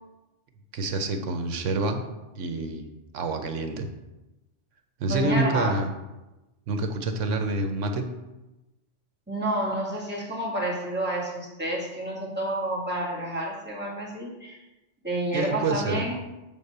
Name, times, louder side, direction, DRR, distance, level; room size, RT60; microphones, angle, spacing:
voice 1, 0.7-2.0 2.3-2.9 3.1-3.9 5.0-5.9 6.7-8.1 15.3-16.0, right 3 dB, 90° right, 6 dB, 1.1 m, -27 dB
voice 2, 5.1-5.8 9.3-14.6 15.0-16.2, right 1 dB, 10° right, -5 dB, 1.9 m, -29 dB
7.1 x 3.8 x 6.5 m, 1.0 s
omnidirectional pair, 1.2 m